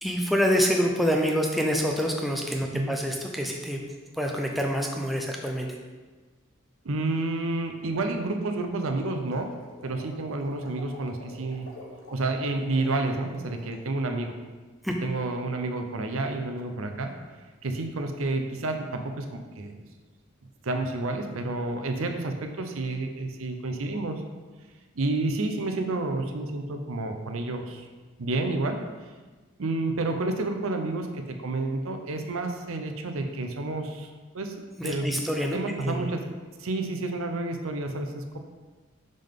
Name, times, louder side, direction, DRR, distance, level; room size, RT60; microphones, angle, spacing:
voice 1, 0.0-3.8 4.2-5.7 14.8-15.0 34.8-35.6 35.8-36.1, equal, ahead, 1 dB, 0.4 m, -26 dB
voice 2, 6.8-9.5 9.8-11.7 12.1-14.4 15.0-17.1 17.6-19.8 20.6-24.2 25.0-27.8 28.2-28.8 29.6-35.2 35.5-36.2 36.6-38.4, right 2 dB, 85° right, 5 dB, 0.6 m, -30 dB
sound 1, 9.0-13.9, left 1 dB, 65° left, 1.1 m, -48 dB
5.6 x 5.2 x 3.6 m, 1.3 s
head